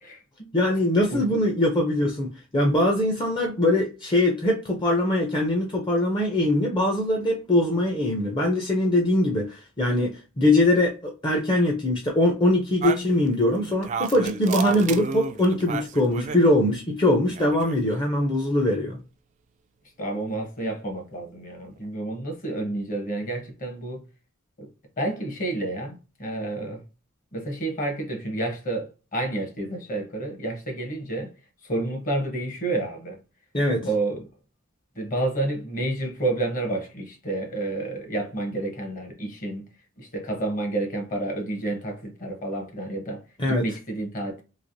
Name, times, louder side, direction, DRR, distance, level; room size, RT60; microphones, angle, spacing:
voice 1, 0.0-0.5 1.1-1.3 20.0-24.0 24.6-24.7 25.0-26.8 27.3-31.3 31.6-33.2 33.8-34.3 35.0-39.7 40.0-43.2 43.5-44.4, right 2 dB, 40° left, 1.0 m, -30 dB
voice 2, 0.5-19.0 33.5-33.9 43.4-43.7, left 1 dB, 20° left, 0.5 m, -22 dB
sound 1, 12.8-16.4 17.2-17.9, right 6 dB, 35° right, 0.3 m, -32 dB
3.2 x 2.8 x 2.6 m
head